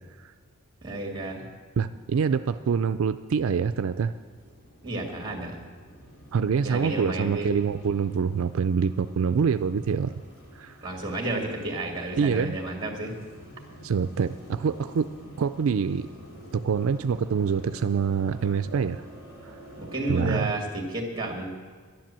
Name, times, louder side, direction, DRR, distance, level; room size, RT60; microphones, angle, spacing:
voice 1, 0.8-1.5 4.8-5.6 6.6-7.5 10.8-13.1 19.8-21.5, right 2 dB, 20° right, 1 dB, 2.2 m, -31 dB
voice 2, 1.8-4.1 6.3-10.1 10.6-10.7 12.2-12.6 13.8-16.1 16.5-19.0 19.4-19.5 20.1-20.5, right 6 dB, 75° right, 10 dB, 0.4 m, -25 dB
sound 1, 2.7-20.2, right 1 dB, 80° left, 2.9 m, -48 dB
11.5 x 10.5 x 7.4 m, 1.6 s
head